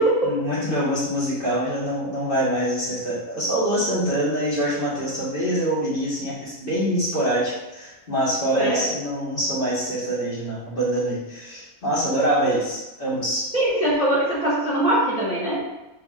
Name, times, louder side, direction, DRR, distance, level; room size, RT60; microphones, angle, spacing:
voice 1, 0.2-13.5, right 1 dB, 35° left, -9 dB, 1.7 m, -25 dB
voice 2, 8.5-8.9 13.5-15.6, right 1 dB, 5° right, -9 dB, 1.2 m, -21 dB
6.1 x 3.5 x 2.5 m, 1.0 s
omnidirectional pair, 1.6 m